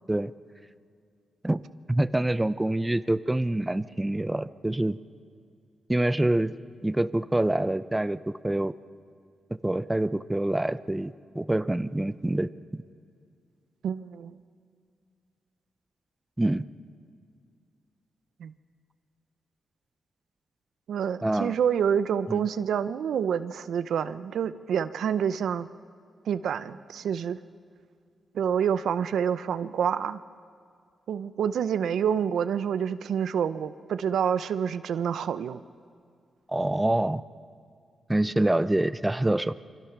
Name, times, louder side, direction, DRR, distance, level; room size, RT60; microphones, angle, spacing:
voice 1, 1.9-5.0 5.9-6.5 6.8-8.7 9.6-12.8 16.4-16.6 21.2-21.5 22.3-22.4 36.5-37.2 38.1-39.5, right 1 dB, 10° right, 14 dB, 0.6 m, -26 dB
voice 2, 13.8-14.3 18.4-18.5 20.9-25.7 26.3-27.4 28.3-30.2 31.1-35.6, right 8 dB, 90° right, 13 dB, 0.6 m, -27 dB
27.5 x 25.0 x 6.0 m, 2.2 s
cardioid pair, 100°, 0 cm